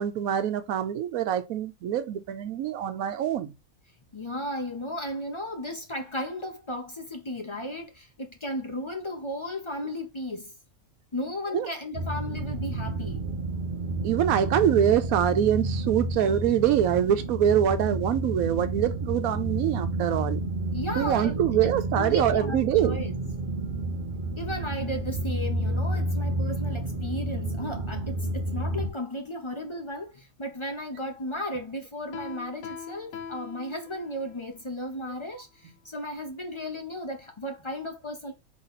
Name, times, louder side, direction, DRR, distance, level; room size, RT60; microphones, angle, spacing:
voice 1, 0.0-3.5 11.5-11.7 14.0-20.4 21.0-23.0 25.7-25.8, right 10 dB, 80° right, 1.0 m, -24 dB
voice 2, 4.1-10.5 11.1-13.2 20.7-23.1 24.4-38.3, left 1 dB, 35° left, 0.4 m, -35 dB
sound 1, 11.9-28.9, right 2 dB, 45° right, 0.7 m, -30 dB
Piano, 32.1-34.4, left 7 dB, 70° left, 0.9 m, -41 dB
4.1 x 3.1 x 3.9 m
omnidirectional pair, 1.5 m